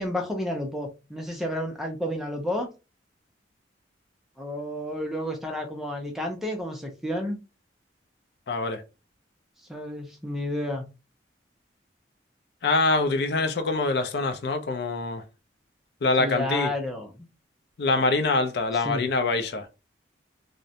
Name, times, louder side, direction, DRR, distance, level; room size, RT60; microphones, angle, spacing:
voice 1, 0.0-2.7 4.4-7.4 9.7-10.8 16.2-17.1 18.8-19.0, left 1 dB, ahead, 0.4 m, -31 dB
voice 2, 8.5-8.8 12.6-15.2 16.0-16.7 17.8-19.7, left 3 dB, 60° left, 0.4 m, -24 dB
2.4 x 2.1 x 2.7 m
head